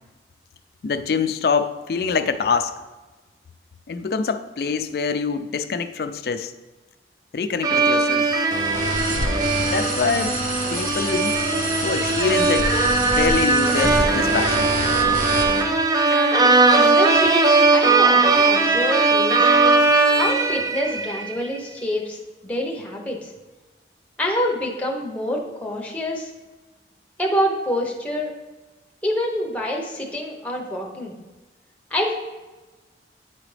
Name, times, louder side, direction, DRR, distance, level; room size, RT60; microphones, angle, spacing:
voice 1, 0.8-2.7 3.9-6.5 7.3-8.3 9.6-10.4 10.7-11.4 11.8-12.7 13.1-14.7, left 5 dB, 55° left, 10 dB, 0.4 m, -24 dB
sound 1, 7.6-21.3, right 3 dB, 20° right, 0.3 m, -19 dB
sound 2, 8.5-15.6, right 2 dB, 45° right, 0.8 m, -26 dB
voice 2, 16.1-19.5 20.1-23.3 24.2-26.3 27.2-28.3 29.0-31.1 31.9-32.1, equal, 5° left, -1 dB, 0.8 m, -26 dB
8.5 x 4.9 x 3.2 m, 1.2 s
head